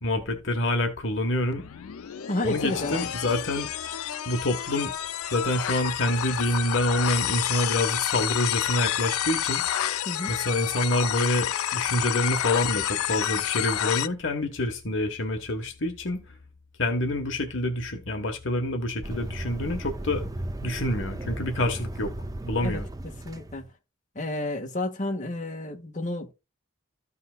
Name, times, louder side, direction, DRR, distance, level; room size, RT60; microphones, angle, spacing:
voice 1, 0.0-1.6 2.4-3.7 4.3-4.9 5.3-9.6 10.3-16.2 16.8-20.3 20.6-22.1 22.4-22.9, left 1 dB, 60° left, 1.3 m, -27 dB
sound 1, 1.5-14.1, left 10 dB, 90° left, 0.5 m, -29 dB
voice 2, 2.3-3.1 10.0-10.3 22.6-22.8 23.2-23.7 24.1-26.3, left 1 dB, 35° left, 1.5 m, -31 dB
sound 2, 19.0-23.7, right 1 dB, 15° right, 0.5 m, -35 dB
14.0 x 5.6 x 2.3 m
head